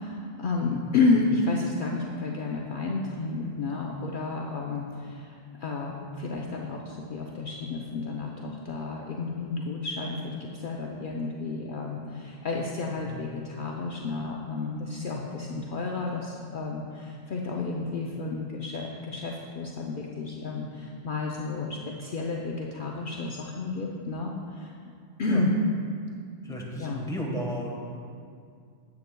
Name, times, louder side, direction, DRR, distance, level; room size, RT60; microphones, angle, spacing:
voice 1, 0.0-24.7 25.2-25.5 26.5-27.1, left 3 dB, 60° left, -1 dB, 0.7 m, -31 dB
voice 2, 26.4-27.9, equal, 5° left, -3 dB, 1.0 m, -35 dB
9.6 x 8.1 x 2.2 m, 2.3 s
omnidirectional pair, 1.1 m